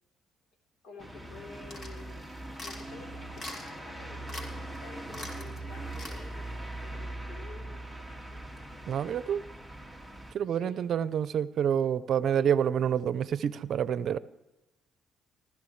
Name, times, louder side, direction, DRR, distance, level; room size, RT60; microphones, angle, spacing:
voice 1, 0.8-8.4 10.5-10.9, left 3 dB, 85° left, 3 dB, 3.9 m, -51 dB
sound 1, 1.0-10.3, right 1 dB, 10° left, 2.2 m, -41 dB
sound 2, 1.7-2.0 2.6-2.8 3.4-3.8 4.3-4.5 4.7-4.8 5.1-5.5 5.9-6.2, left 1 dB, 50° left, 3.7 m, -42 dB
voice 2, 8.9-9.4 10.3-14.2, right 8 dB, 65° right, 16 dB, 0.6 m, -28 dB
20.0 x 14.5 x 3.3 m, 0.99 s
cardioid pair, 90°, 0 cm